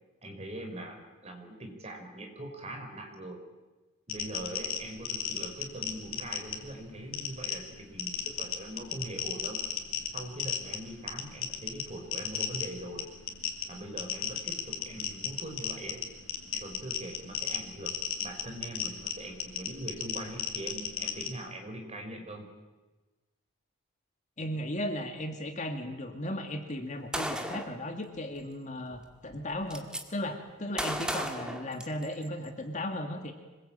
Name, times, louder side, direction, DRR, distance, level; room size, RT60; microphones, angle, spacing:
voice 1, 0.2-3.5 4.1-9.6 10.1-13.1 13.7-16.0 16.5-22.5 30.6-30.8, right 1 dB, 30° right, 3 dB, 4.8 m, -42 dB
sound 1, 4.1-21.3, left 8 dB, 70° left, 3.2 m, -36 dB
voice 2, 24.4-33.3, left 1 dB, 35° left, 5 dB, 2.2 m, -36 dB
Gunshot gunfire, 27.1-27.8 28.9-29.0 29.3-30.0 30.8-32.3, equal, 5° right, 1.9 m, -34 dB
26.0 x 21.5 x 8.8 m, 1.2 s
head